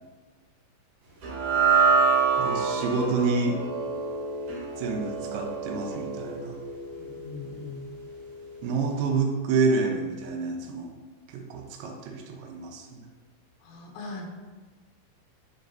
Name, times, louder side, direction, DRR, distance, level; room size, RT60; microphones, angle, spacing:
sound 1, 1.2-7.6, right 4 dB, 65° right, 2.1 m, -26 dB
voice 1, 2.4-3.6 4.8-6.6 8.6-11.0 11.3-13.0, right 4 dB, 85° right, 3 dB, 3.0 m, -28 dB
voice 2, 6.9-8.0 13.6-14.2, left 3 dB, 80° left, 0 dB, 3.4 m, -40 dB
11.5 x 4.0 x 2.7 m, 1.4 s
omnidirectional pair, 5.3 m